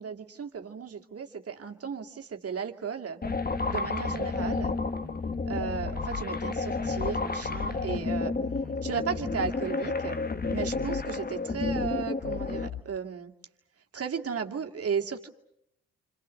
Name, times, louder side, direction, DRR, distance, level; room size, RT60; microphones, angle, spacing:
voice 1, 0.0-3.2 3.7-4.7 5.5-8.3 8.8-10.2 10.5-13.3 13.9-15.3, right 6 dB, 50° right, 3 dB, 2.3 m, -35 dB
sound 1, 3.2-4.7 5.0-6.3 6.8-7.1 7.4-9.5 9.8-11.1 11.6-11.9 12.2-12.8, left 8 dB, 80° left, 2.3 m, -40 dB
sound 2, 3.2-12.7, left 3 dB, 30° left, 1.4 m, -31 dB
29.0 x 26.0 x 6.5 m, 0.72 s
supercardioid pair, 50°, 31 cm